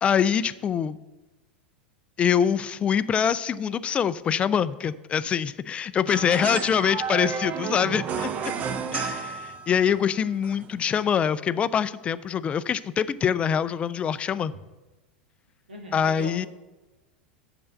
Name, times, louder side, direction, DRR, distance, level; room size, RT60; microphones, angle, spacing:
voice 1, 0.0-1.0 2.2-8.3 8.9-14.5 15.9-16.5, left 8 dB, 20° left, 17 dB, 0.3 m, -24 dB
sound 1, 6.1-10.0 10.4-11.0, right 6 dB, 30° right, 0.7 m, -32 dB
voice 2, 6.4-6.8 8.5-9.0 15.7-16.5, right 1 dB, 75° right, 1 dB, 1.8 m, -41 dB
7.7 x 5.4 x 7.3 m, 1.1 s
figure-of-eight pair, 85°, 5 cm